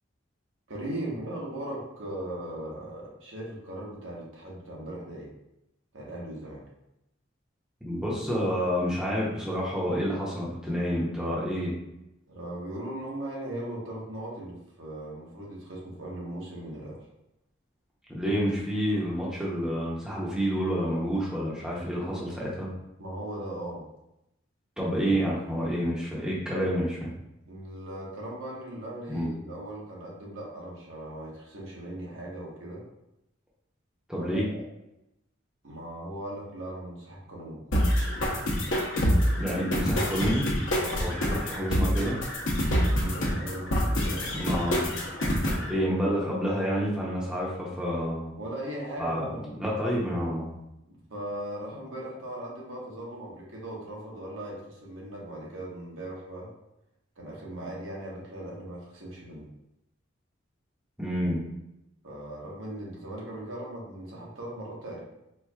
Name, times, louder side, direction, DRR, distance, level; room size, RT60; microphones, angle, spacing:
voice 1, 0.7-5.3 5.9-6.6 12.3-17.0 23.0-23.8 27.5-32.8 34.2-34.6 35.6-37.6 40.7-41.0 42.5-44.4 44.7-44.9 48.4-49.4 50.9-56.5 57.2-59.5 62.0-65.0, right 1 dB, 75° right, -3 dB, 1.0 m, -38 dB
voice 2, 7.8-11.7 18.1-22.7 24.8-27.1 29.1-29.3 34.1-34.5 39.4-40.5 41.0-42.2 44.3-44.9 45.7-48.3 49.0-49.2 49.6-50.6 61.0-61.4, equal, 5° right, -6 dB, 0.6 m, -29 dB
sound 1, 37.7-45.7, equal, 70° left, 0.7 m, -26 dB
4.4 x 2.5 x 2.3 m, 0.86 s
head